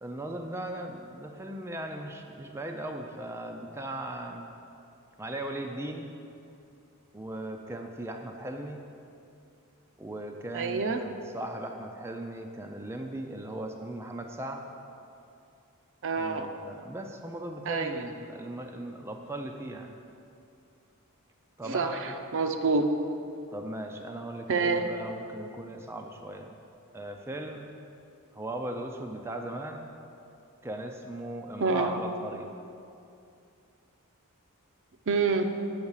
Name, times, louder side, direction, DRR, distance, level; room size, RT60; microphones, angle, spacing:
voice 1, 0.0-4.5 5.2-6.1 7.1-8.8 10.0-14.7 16.2-20.0 21.6-22.1 23.5-26.6 26.9-27.7 28.3-29.9 30.6-32.5, right 1 dB, 10° right, 3 dB, 0.4 m, -38 dB
voice 2, 10.5-11.0 16.0-16.5 17.7-18.0 21.6-22.8 24.5-24.8 31.6-31.9 35.1-35.5, right 4 dB, 60° right, 6 dB, 0.6 m, -27 dB
8.0 x 5.7 x 7.2 m, 2.6 s
head